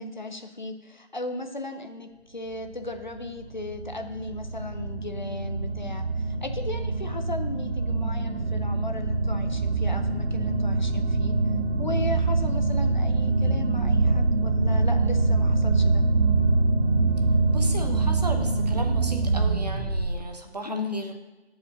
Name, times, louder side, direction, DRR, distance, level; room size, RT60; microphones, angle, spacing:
voice 1, 0.0-11.3 11.8-16.1 20.6-21.0, left 2 dB, 45° left, 6 dB, 0.5 m, -36 dB
sound 1, 2.7-20.2, right 3 dB, 85° right, 0.8 m, -24 dB
voice 2, 17.5-21.1, right 1 dB, 40° right, 4 dB, 0.8 m, -36 dB
8.2 x 5.0 x 3.8 m, 1.2 s
hypercardioid pair, 180°, 33 cm